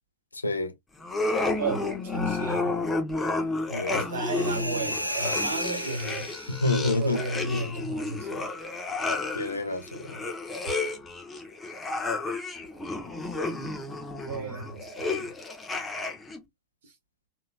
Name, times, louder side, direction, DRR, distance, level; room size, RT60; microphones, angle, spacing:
voice 1, 0.3-0.7 3.7-4.0 6.5-8.0 9.3-10.2, left 2 dB, 80° left, 0.6 m, -29 dB
sound 1, 1.0-16.4, left 3 dB, 15° left, 0.8 m, -31 dB
voice 2, 1.6-2.8 3.9-6.3 7.0-8.5 14.3-15.3 16.8-16.9, right 3 dB, 60° right, 1.4 m, -34 dB
sound 2, 4.2-6.9, equal, 90° right, 0.4 m, -33 dB
3.0 x 2.7 x 2.2 m
figure-of-eight pair, 90°, 0 cm